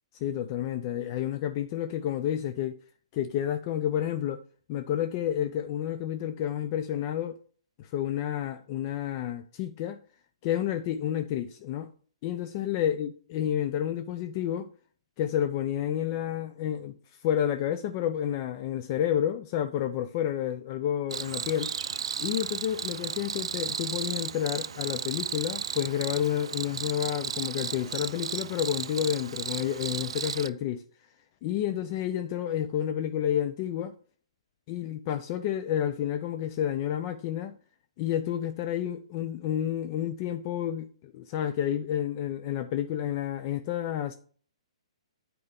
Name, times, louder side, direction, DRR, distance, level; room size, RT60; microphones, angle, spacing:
voice 1, 0.2-2.8 3.1-4.4 4.7-7.4 7.8-10.0 10.4-11.9 12.2-14.7 15.2-16.9 17.2-21.8 22.2-30.8 31.4-33.9 34.7-37.6 38.0-44.1, left 10 dB, 35° left, 0.6 m, -30 dB
Cricket, 21.1-30.5, right 7 dB, 60° right, 0.4 m, -34 dB
8.7 x 4.7 x 5.1 m
figure-of-eight pair, 125°, 3 cm